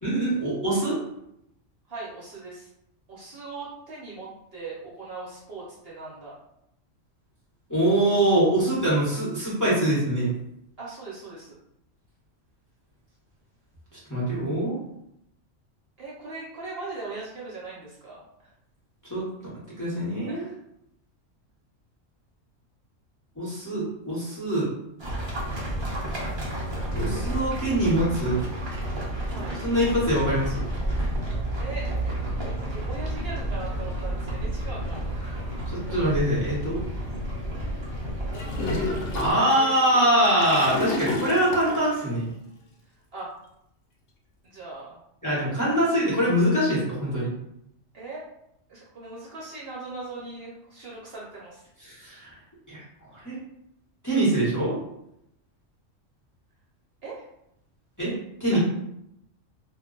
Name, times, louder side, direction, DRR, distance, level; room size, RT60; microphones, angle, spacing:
voice 1, 0.0-1.0 7.7-10.3 13.9-14.8 19.1-19.5 19.8-20.5 23.4-24.7 26.9-28.4 29.6-30.5 35.7-36.8 39.1-42.3 45.2-47.3 51.8-52.3 52.7-53.4 54.0-54.8 58.0-58.1 58.4-58.6, right 1 dB, 15° left, -8 dB, 0.8 m, -24 dB
voice 2, 1.9-2.7 3.1-6.3 10.8-11.6 16.0-18.2 20.3-20.6 29.3-29.6 31.6-35.4 35.8-36.0 38.7-40.1 43.1-43.3 44.4-45.0 47.9-48.2 48.7-51.6 57.0-57.3 58.5-58.6, right 3 dB, 60° right, -5 dB, 0.8 m, -39 dB
sound 1, 25.0-39.3, right 1 dB, 30° right, 0.5 m, -31 dB
Gurgling / Toilet flush, 38.3-42.1, left 2 dB, 70° left, 0.8 m, -31 dB
2.3 x 2.1 x 3.7 m, 0.79 s
omnidirectional pair, 1.3 m